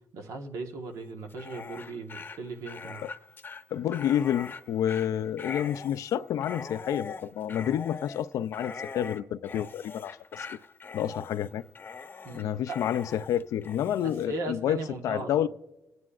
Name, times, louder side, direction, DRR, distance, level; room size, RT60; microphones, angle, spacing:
voice 1, 0.1-3.0 12.2-12.8 14.0-15.3, right 3 dB, 85° right, 1.3 m, -38 dB
Dog, 1.3-14.3, left 5 dB, 40° left, 0.7 m, -42 dB
voice 2, 3.7-10.6 10.9-11.6 12.3-15.5, left 10 dB, 90° left, 0.4 m, -29 dB
26.5 x 9.5 x 2.4 m
cardioid pair, 110°, 6 cm